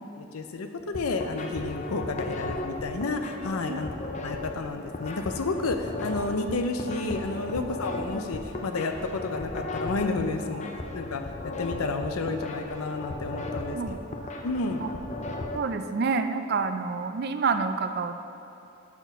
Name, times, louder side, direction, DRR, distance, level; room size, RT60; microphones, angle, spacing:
voice 1, 0.2-3.9 4.2-10.7 10.9-11.2 11.6-13.8 14.4-14.8, left 3 dB, 85° left, 6 dB, 0.6 m, -31 dB
sound 1, 0.8-15.6, left 2 dB, 30° left, 0.5 m, -36 dB
voice 2, 15.5-18.2, right 4 dB, 45° right, 8 dB, 0.4 m, -28 dB
6.8 x 6.0 x 6.0 m, 2.7 s
head